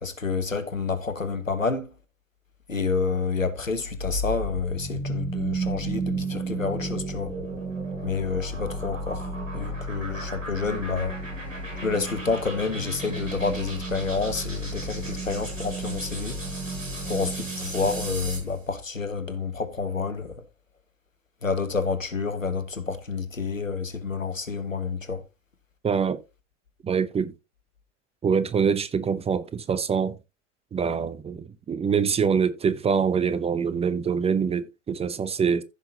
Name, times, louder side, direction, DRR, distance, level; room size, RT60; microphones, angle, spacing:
voice 1, 0.0-1.9 2.7-7.3 8.0-11.2 11.8-16.4 17.1-20.4 21.4-25.2, left 4 dB, 90° left, 1.3 m, -29 dB
sound 1, 3.8-18.5, right 2 dB, 85° right, 5.6 m, -33 dB
voice 2, 25.8-26.2 26.8-27.3 28.2-30.2 30.7-35.6, right 6 dB, 15° right, 0.8 m, -25 dB
15.0 x 5.9 x 2.8 m
figure-of-eight pair, 85°, 38 cm